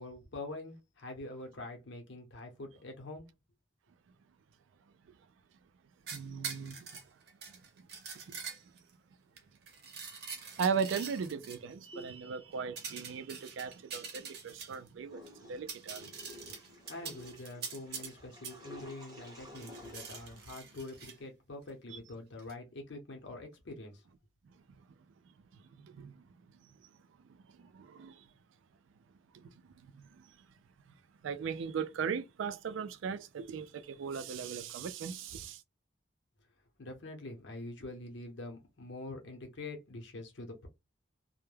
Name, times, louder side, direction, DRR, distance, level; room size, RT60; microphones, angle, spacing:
voice 1, 0.0-3.3 16.4-16.6 16.9-24.0 36.8-40.7, left 2 dB, 70° left, 0.7 m, -45 dB
sound 1, 6.1-8.9 9.4-11.6 12.8-14.9 15.3-15.4 15.6-18.1 18.4-18.6 19.5-21.1 22.4-22.5, right 6 dB, 55° right, 0.7 m, -44 dB
voice 2, 6.1-7.0 7.5-7.9 8.2-8.5 10.6-16.1 21.9-22.0 24.5-24.6 25.2-26.3 26.5-27.0 27.2-28.3 29.3-30.5 31.2-35.6, right 6 dB, 85° right, 0.3 m, -39 dB
sound 2, 11.8-12.7, right 2 dB, 10° left, 0.5 m, -51 dB
Water / Toilet flush, 15.0-21.2, left 1 dB, 20° right, 0.8 m, -52 dB
2.2 x 2.0 x 3.2 m
head